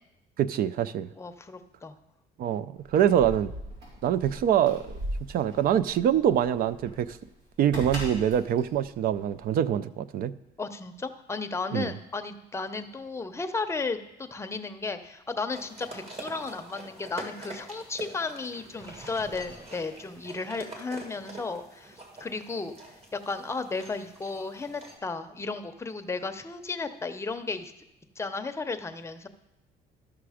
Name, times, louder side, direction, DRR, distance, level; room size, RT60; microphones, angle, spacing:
voice 1, 0.4-1.1 2.4-3.5 4.0-5.0 5.3-7.2 7.6-10.3 11.7-11.9, right 10 dB, 60° right, 16 dB, 0.5 m, -25 dB
voice 2, 1.2-2.0 10.6-22.7 23.1-27.7 28.2-29.3, left 4 dB, 15° left, 8 dB, 0.7 m, -34 dB
Keys jangling, 2.8-9.7, equal, 80° right, 3.5 m, -39 dB
sound 1, 15.5-25.0, right 2 dB, 35° right, 2.2 m, -45 dB
Gurgling, 18.7-20.8, right 2 dB, 20° right, 1.2 m, -51 dB
12.5 x 6.0 x 4.9 m, 0.89 s
cardioid pair, 110°, 17 cm